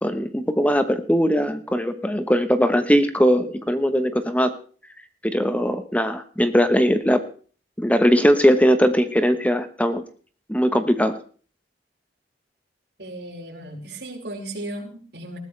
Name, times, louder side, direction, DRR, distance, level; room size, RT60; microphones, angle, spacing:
voice 1, 0.0-4.5 5.2-7.2 7.8-10.0 10.5-11.2, equal, 10° left, 9 dB, 1.1 m, -20 dB
voice 2, 13.0-15.4, right 1 dB, 65° right, -1 dB, 5.1 m, -35 dB
20.5 x 14.5 x 3.3 m, 0.41 s
head